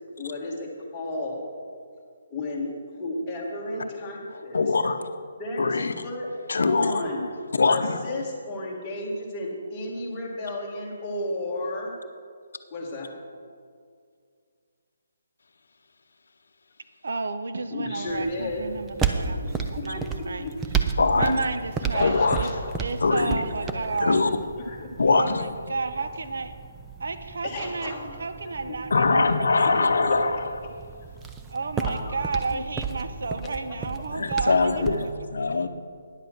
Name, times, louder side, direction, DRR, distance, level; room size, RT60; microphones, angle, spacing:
voice 1, 0.2-1.4 2.3-4.6 5.4-6.3 6.7-7.3 7.7-11.9 12.7-13.1 17.7-18.6 19.1-20.5 21.9-22.8 23.4-23.9 24.6-25.1 27.4-28.3 28.7-29.0 29.9-30.2 31.9-32.2, left 2 dB, 15° left, -4 dB, 1.4 m, -33 dB
voice 2, 4.5-5.0 5.6-5.9 6.5-6.9 7.5-8.0 21.0-21.3 22.0-22.4 23.0-23.4 24.0-24.3 25.0-25.4 28.9-30.4 34.1-35.0 35.3-35.7, left 4 dB, 75° left, 8 dB, 0.7 m, -22 dB
voice 3, 17.0-19.6 19.8-20.4 21.2-22.5 22.8-24.3 25.1-26.5 27.0-29.8 31.5-34.8 35.4-35.5, right 3 dB, 60° right, 10 dB, 0.7 m, -31 dB
sound 1, 18.1-35.1, right 5 dB, 5° right, 0.3 m, -33 dB
10.0 x 8.0 x 5.9 m, 2.2 s
hypercardioid pair, 175°, 0 cm